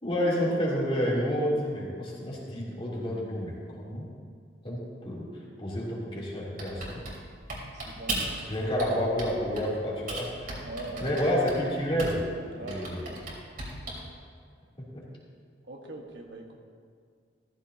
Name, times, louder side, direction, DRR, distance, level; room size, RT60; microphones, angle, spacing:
voice 1, 0.0-4.1 4.6-5.3 5.6-7.0 8.5-10.7 11.0-12.2 12.6-13.0 14.8-15.0, equal, 30° left, -6 dB, 3.1 m, -29 dB
Typing, 6.6-8.5 8.8-9.7 10.1-12.3 12.7-14.1, right 2 dB, 50° right, 3.2 m, -36 dB
voice 2, 7.7-8.3 10.6-11.2 12.6-13.2 15.7-16.6, right 2 dB, 70° right, 1 dB, 1.5 m, -41 dB
14.5 x 14.5 x 2.8 m, 2.1 s
head